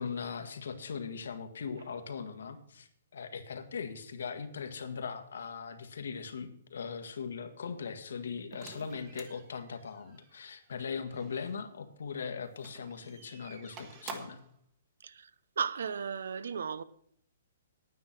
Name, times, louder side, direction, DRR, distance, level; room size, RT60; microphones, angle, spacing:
voice 1, 0.0-14.4, left 6 dB, 80° left, 1.6 m, -40 dB
sound 1, 8.5-11.6 12.5-14.5, right 5 dB, 25° right, 1.2 m, -50 dB
voice 2, 15.6-16.8, right 6 dB, 75° right, 0.7 m, -35 dB
9.8 x 9.3 x 5.9 m
hypercardioid pair, 170°, 0 cm